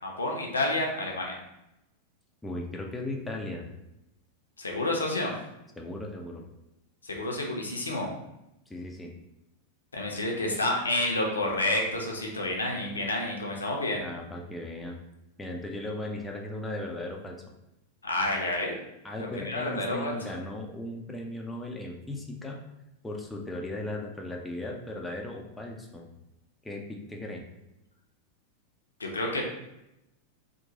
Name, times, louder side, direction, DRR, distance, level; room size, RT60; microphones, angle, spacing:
voice 1, 0.0-1.4 4.6-5.3 7.0-8.1 9.9-14.0 18.0-18.8 19.2-20.1 29.0-29.4, left 2 dB, 75° left, 0 dB, 0.5 m, -29 dB
voice 2, 2.4-3.7 5.8-6.4 8.7-9.1 14.0-15.0 15.4-17.4 19.0-22.6 23.0-26.1 26.6-27.4, left 1 dB, 10° left, 0 dB, 0.4 m, -37 dB
2.9 x 2.1 x 2.7 m, 0.90 s
figure-of-eight pair, 90°, 0 cm